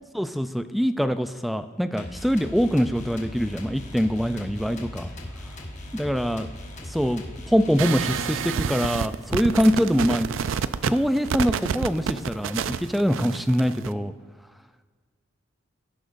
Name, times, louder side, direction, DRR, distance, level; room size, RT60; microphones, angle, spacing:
voice 1, 0.1-5.1 5.9-6.5 6.8-10.3 10.8-14.1, equal, ahead, 10 dB, 0.4 m, -24 dB
sound 1, 2.0-8.7, left 1 dB, 40° left, 1.4 m, -39 dB
sound 2, 7.8-13.9, right 7 dB, 70° right, 0.4 m, -28 dB
17.0 x 10.0 x 2.6 m, 1.5 s
head